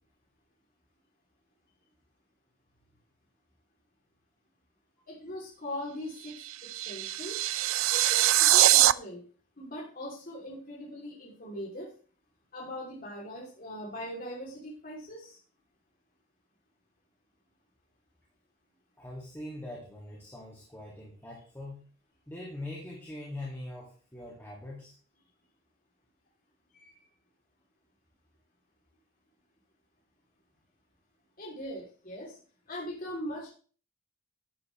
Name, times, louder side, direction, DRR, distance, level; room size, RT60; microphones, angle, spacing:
voice 1, 5.1-7.4 7.9-9.2 9.6-11.9 12.5-15.4 26.7-27.0 31.4-32.4 32.7-33.5, equal, 45° left, -3 dB, 2.9 m, -40 dB
sound 1, 6.2-8.9, right 15 dB, 75° right, 0.4 m, -23 dB
voice 2, 19.0-21.8 22.3-24.9, left 1 dB, 10° left, -3 dB, 2.1 m, -42 dB
12.0 x 9.7 x 3.2 m, 0.40 s
head